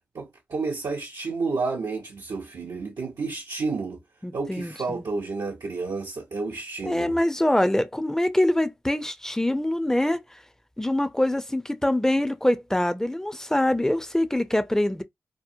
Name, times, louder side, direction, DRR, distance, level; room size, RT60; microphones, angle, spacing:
voice 1, 0.1-4.0 4.3-7.2, right 4 dB, 70° right, 0.6 m, -30 dB
voice 2, 4.2-5.0 6.8-10.2 10.8-15.0, left 1 dB, 5° left, 0.5 m, -24 dB
2.8 x 2.1 x 2.5 m
cardioid pair, 40°, 7 cm